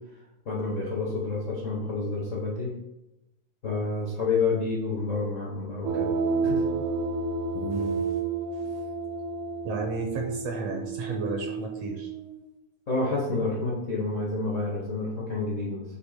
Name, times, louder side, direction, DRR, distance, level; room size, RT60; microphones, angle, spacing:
voice 1, 0.4-2.8 3.6-6.1 6.4-6.6 12.9-15.8, left 3 dB, 80° left, -4 dB, 0.6 m, -29 dB
sound 1, 5.8-12.4, right 4 dB, 90° right, 2.2 m, -30 dB
voice 2, 7.5-8.0 8.5-8.7 9.6-12.1, right 3 dB, 70° right, 2 dB, 1.6 m, -33 dB
8.0 x 2.9 x 4.9 m, 0.91 s
omnidirectional pair, 3.5 m